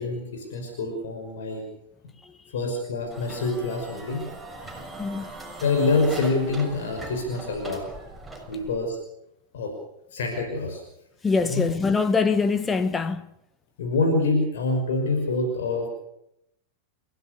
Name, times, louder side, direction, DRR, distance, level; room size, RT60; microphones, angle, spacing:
voice 1, 0.0-1.6 2.5-4.2 5.6-7.8 8.5-9.0 9.5-9.7 10.1-10.8 11.4-11.6 13.8-15.9, left 3 dB, 60° left, 5.6 m, -26 dB
sound 1, 3.1-8.9, right 2 dB, ahead, 6.8 m, -40 dB
voice 2, 11.2-13.2, left 4 dB, 15° left, 1.1 m, -23 dB
29.5 x 16.0 x 6.9 m
figure-of-eight pair, 90°, 0 cm